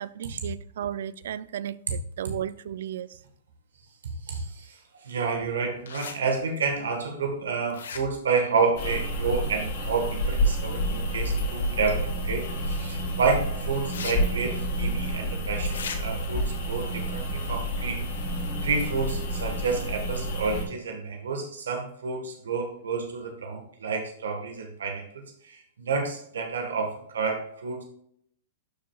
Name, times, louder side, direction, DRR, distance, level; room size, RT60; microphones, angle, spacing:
voice 1, 0.0-3.2, right 10 dB, 70° right, 0.3 m, -34 dB
voice 2, 4.2-18.3 18.6-27.8, right 4 dB, 90° right, 1.5 m, -30 dB
sound 1, 5.8-6.2 7.7-8.3 11.9-12.0 13.9-14.1 14.4-14.5 15.7-16.0, left 6 dB, 85° left, 1.1 m, -36 dB
sound 2, 8.8-20.6, equal, 65° left, 3.0 m, -29 dB
12.0 x 4.6 x 2.4 m
hypercardioid pair, 135°, 0 cm